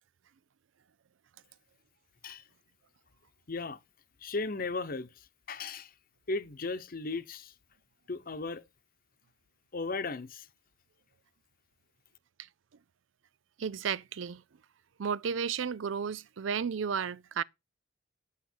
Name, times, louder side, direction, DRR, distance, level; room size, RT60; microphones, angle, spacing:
voice 1, 3.5-3.8 4.2-5.9 6.3-7.5 8.1-8.6 9.7-10.5, left 3 dB, 50° left, 0.9 m, -36 dB
voice 2, 13.6-14.4 15.0-17.4, right 6 dB, 80° right, 0.5 m, -33 dB
9.3 x 8.3 x 4.5 m
head